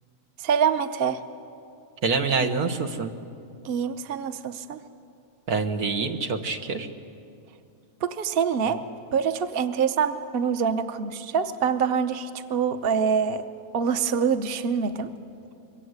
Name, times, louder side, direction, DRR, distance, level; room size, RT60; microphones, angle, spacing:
voice 1, 0.4-1.2 3.6-4.8 8.0-8.8 9.1-13.5 13.7-15.1, right 6 dB, 45° right, 9 dB, 1.0 m, -25 dB
voice 2, 2.0-3.1 5.5-6.9 8.7-8.8, right 4 dB, 90° right, 5 dB, 1.9 m, -26 dB
26.0 x 23.0 x 8.1 m, 2.5 s
omnidirectional pair, 1.5 m